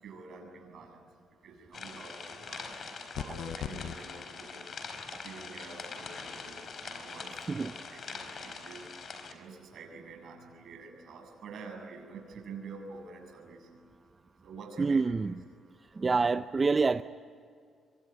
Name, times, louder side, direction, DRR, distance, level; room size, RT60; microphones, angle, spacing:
voice 1, 0.0-1.0 1.4-2.8 3.2-4.7 5.2-8.9 9.3-13.7 14.4-15.0, right 4 dB, 65° right, 3 dB, 7.7 m, -47 dB
sound 1, 1.7-9.3, left 4 dB, 50° left, 4.4 m, -43 dB
sound 2, 3.1-4.0, left 10 dB, 75° left, 0.7 m, -37 dB
voice 2, 14.8-15.3 15.9-17.0, right 4 dB, 30° right, 11 dB, 0.6 m, -27 dB
25.0 x 24.5 x 9.6 m, 2.3 s
cardioid pair, 90°, 0 cm